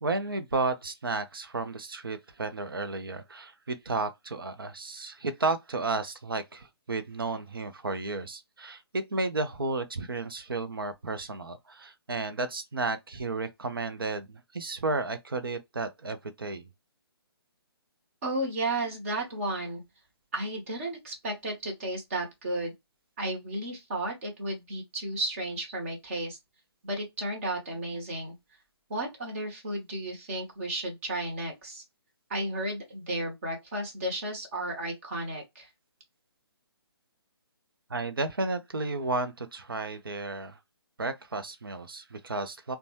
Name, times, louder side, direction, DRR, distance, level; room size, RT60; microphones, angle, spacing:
voice 1, 0.0-16.7 37.9-40.6 41.0-42.8, right 3 dB, 60° right, 0.7 m, -33 dB
voice 2, 18.2-19.8 20.3-22.7 23.2-26.4 26.8-28.4 28.9-31.8 32.3-35.7, right 1 dB, 30° right, 1.2 m, -33 dB
3.9 x 2.3 x 3.0 m
figure-of-eight pair, 140°, 13 cm